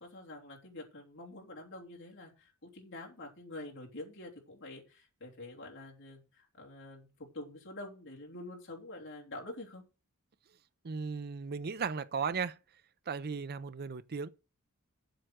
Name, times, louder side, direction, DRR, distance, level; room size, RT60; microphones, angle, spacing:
voice 1, 0.0-9.8, left 2 dB, 55° left, 3.3 m, -47 dB
voice 2, 10.8-12.6 13.1-14.3, right 5 dB, 45° right, 0.6 m, -36 dB
7.8 x 7.7 x 6.3 m
head